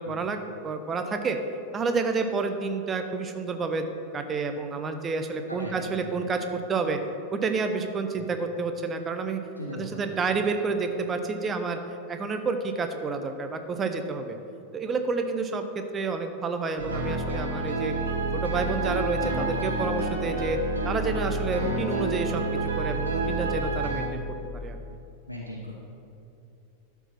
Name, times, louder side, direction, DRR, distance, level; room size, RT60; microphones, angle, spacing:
voice 1, 0.0-1.4 1.7-3.9 4.1-7.0 7.3-9.4 9.8-11.8 12.1-14.4 14.7-17.9 18.3-20.6 20.8-24.2 24.5-24.8, right 4 dB, 20° right, 6 dB, 0.8 m, -29 dB
voice 2, 5.5-6.1 8.2-8.3 9.6-10.1 25.3-25.7, left 1 dB, 85° left, -3 dB, 1.0 m, -38 dB
sound 1, 16.8-24.1, right 2 dB, 70° right, 1.5 m, -29 dB
12.5 x 4.7 x 5.8 m, 2.7 s
figure-of-eight pair, 90°, 0 cm